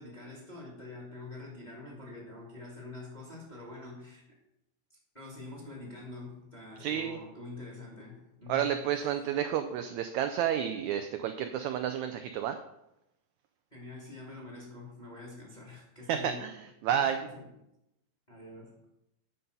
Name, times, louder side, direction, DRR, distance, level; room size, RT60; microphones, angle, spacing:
voice 1, 0.0-4.2 5.1-8.7 13.7-16.5 17.2-17.5 18.3-18.8, left 2 dB, 15° left, -3 dB, 1.8 m, -45 dB
voice 2, 6.8-7.2 8.5-12.6 16.1-17.2, right 9 dB, 80° right, 7 dB, 1.7 m, -31 dB
10.0 x 5.4 x 5.4 m, 0.86 s
omnidirectional pair, 3.7 m